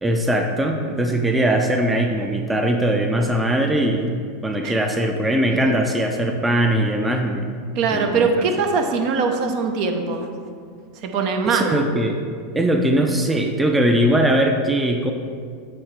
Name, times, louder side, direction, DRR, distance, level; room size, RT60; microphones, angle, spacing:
voice 1, 0.0-4.2 4.4-7.5 7.9-8.5 11.5-12.2 12.5-15.1, right 1 dB, 10° right, 3 dB, 0.5 m, -20 dB
voice 2, 7.7-10.3 11.0-11.8, right 4 dB, 50° right, 5 dB, 0.7 m, -22 dB
8.5 x 2.9 x 4.6 m, 2.1 s
hypercardioid pair, 90°, 0 cm